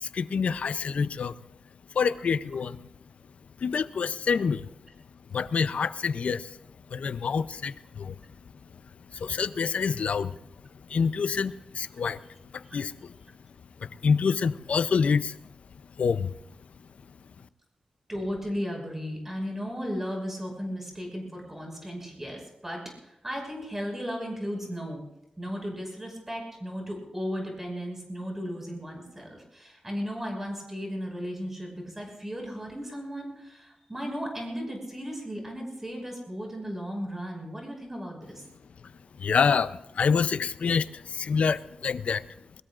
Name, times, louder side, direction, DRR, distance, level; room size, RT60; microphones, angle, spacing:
voice 1, 0.0-1.4 1.9-2.9 3.6-4.6 5.3-6.6 6.9-8.1 9.1-10.4 10.9-12.2 12.5-13.1 13.8-15.4 16.0-16.3 39.2-42.3, left 6 dB, 70° left, 14 dB, 0.5 m, -27 dB
voice 2, 18.1-25.0 25.4-38.4, equal, 15° right, 1 dB, 5.6 m, -35 dB
22.0 x 21.0 x 2.5 m, 0.86 s
wide cardioid pair, 145°, 2 cm